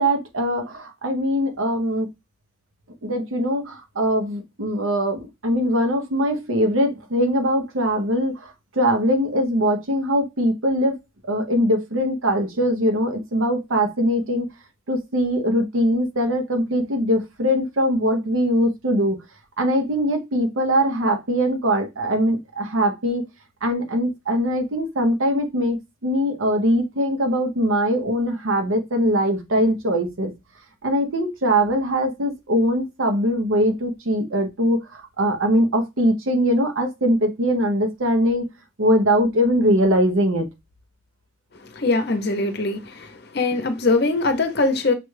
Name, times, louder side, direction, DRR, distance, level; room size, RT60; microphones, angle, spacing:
voice 1, 0.0-2.1 3.0-11.0 11.2-14.5 14.9-19.2 19.6-23.2 23.6-25.8 26.0-30.3 30.8-38.4 38.8-40.5, equal, 85° right, 0.9 m, -21 dB
voice 2, 41.6-44.9, left 3 dB, 50° left, 0.7 m, -22 dB
5.7 x 2.3 x 3.2 m
head